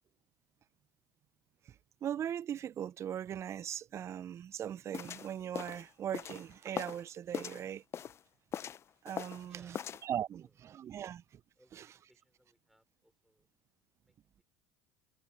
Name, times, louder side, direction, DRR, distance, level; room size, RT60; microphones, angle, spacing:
voice 1, 2.0-7.8 9.0-9.8 10.0-11.4 11.7-11.9, right 10 dB, 40° right, 0.8 m, -39 dB
sound 1, 4.9-7.0 7.3-8.2 8.5-9.5 9.7-10.0, left 9 dB, 40° left, 0.6 m, -41 dB
voice 2, 9.4-10.0 10.3-10.5 11.0-11.1 11.6-13.5 14.0-14.2, equal, ahead, 5.4 m, -68 dB
hypercardioid pair, 75°, 7 cm